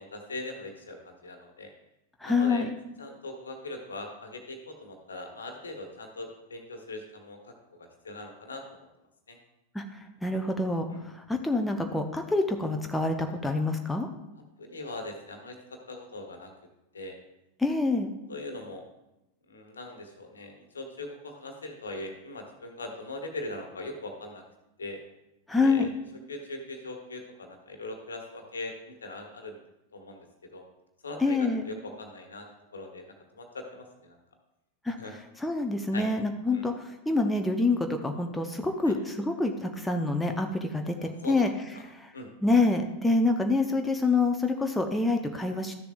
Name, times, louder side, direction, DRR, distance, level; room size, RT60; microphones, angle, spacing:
voice 1, 0.0-1.7 2.2-2.6 3.0-8.8 9.3-9.4 10.9-11.1 14.6-16.5 16.9-17.2 18.3-18.8 19.5-24.4 24.8-25.0 25.6-25.9 26.3-29.6 29.9-30.3 30.5-30.6 31.0-32.5 32.7-33.0 33.3-34.2 35.0-35.1 35.9-36.1 36.5-36.6 38.8-38.9 41.0-41.4 41.7-41.8 42.1-42.3, left 2 dB, 70° left, 4 dB, 1.3 m, -40 dB
voice 2, 2.2-2.7 9.7-14.1 17.6-18.1 25.5-25.9 31.2-31.7 34.8-35.0 35.4-41.5 41.8-42.1 42.4-45.7, left 3 dB, 5° left, 4 dB, 0.7 m, -27 dB
13.0 x 6.8 x 2.5 m, 0.91 s
figure-of-eight pair, 90°, 0 cm